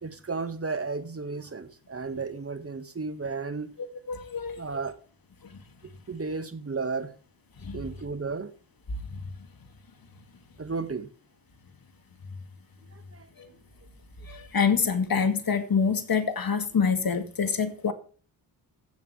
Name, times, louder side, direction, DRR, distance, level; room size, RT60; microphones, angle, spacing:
voice 1, 0.0-3.7 4.6-5.0 6.1-7.1 7.7-8.5 10.6-11.1 13.1-13.3, right 4 dB, 30° right, 1.8 m, -33 dB
voice 2, 4.1-4.6 7.7-7.8 14.3-17.9, left 6 dB, 45° left, 2.5 m, -26 dB
15.5 x 7.4 x 3.4 m
supercardioid pair, 55°, 48 cm